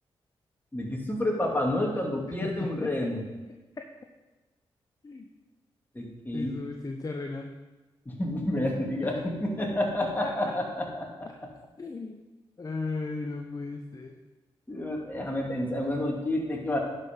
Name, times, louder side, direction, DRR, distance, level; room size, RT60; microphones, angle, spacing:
voice 1, 0.7-3.2 5.9-6.6 8.1-11.3 14.7-16.8, left 1 dB, 20° left, -1 dB, 2.5 m, -29 dB
voice 2, 2.4-2.9 5.0-5.3 6.3-7.5 9.0-9.1 10.2-10.3 11.8-12.2 12.6-14.2, left 3 dB, 35° left, 4 dB, 0.8 m, -35 dB
10.5 x 5.7 x 5.4 m, 1.2 s
cardioid pair, 60°, 10 cm